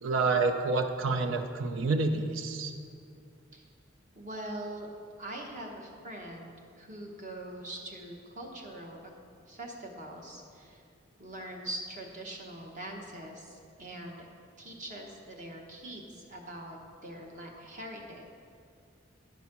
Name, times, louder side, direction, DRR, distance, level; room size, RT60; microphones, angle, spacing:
voice 1, 0.0-2.7, right 3 dB, 80° right, 5 dB, 0.6 m, -28 dB
voice 2, 4.1-4.9 5.2-6.5 6.8-9.0 9.5-10.8 11.2-14.3 14.6-18.3, right 1 dB, 40° right, 1 dB, 1.0 m, -42 dB
10.5 x 4.0 x 5.9 m, 2.3 s
head